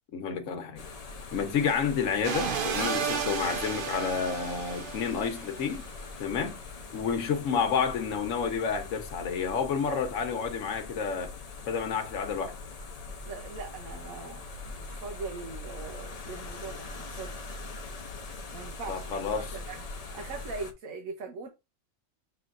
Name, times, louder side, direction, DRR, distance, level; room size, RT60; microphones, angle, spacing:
voice 1, 0.1-0.8 1.3-5.8 6.2-6.6 6.9-11.3 11.7-12.5 18.9-19.6, left 6 dB, 75° left, 1.2 m, -30 dB
sound 1, 0.8-20.7, left 3 dB, 40° left, 0.5 m, -42 dB
sound 2, 2.2-5.7, right 6 dB, 50° right, 0.7 m, -32 dB
voice 2, 13.3-17.4 18.5-19.8 20.1-21.5, right 4 dB, 85° right, 1.2 m, -41 dB
5.9 x 3.2 x 2.5 m
omnidirectional pair, 1.4 m